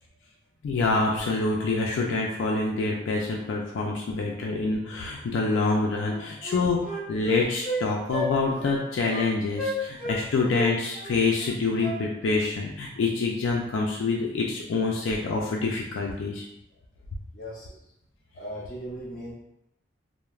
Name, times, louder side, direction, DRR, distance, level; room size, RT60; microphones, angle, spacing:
voice 1, 0.6-16.4, left 3 dB, 85° left, -1 dB, 0.4 m, -26 dB
Wind instrument woodwind instrument, 5.6-5.8 6.1-7.8 8.1-8.3 8.6-8.7 9.1-9.3 9.5-10.2 10.5-12.4, equal, 10° left, 1.0 m, -32 dB
voice 2, 17.3-17.9 18.3-19.3, equal, 45° left, -5 dB, 0.8 m, -38 dB
2.3 x 2.0 x 3.1 m, 0.84 s
head